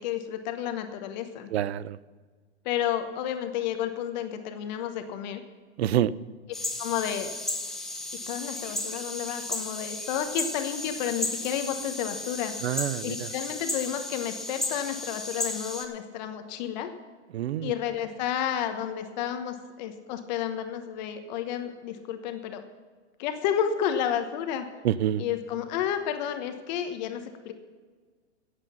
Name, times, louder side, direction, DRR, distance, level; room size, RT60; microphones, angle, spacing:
voice 1, 0.0-1.5 2.6-5.4 6.8-7.3 8.3-12.5 13.0-16.9 17.6-22.6 23.2-24.7 25.2-27.5, left 9 dB, 40° left, 7 dB, 1.1 m, -31 dB
voice 2, 1.5-2.0 5.8-6.1 12.6-13.1 17.3-17.7 24.8-25.2, right 11 dB, 65° right, 19 dB, 0.6 m, -26 dB
sound 1, 6.5-15.8, left 2 dB, ahead, 0.8 m, -34 dB
16.0 x 8.2 x 5.6 m, 1.5 s
hypercardioid pair, 150°, 34 cm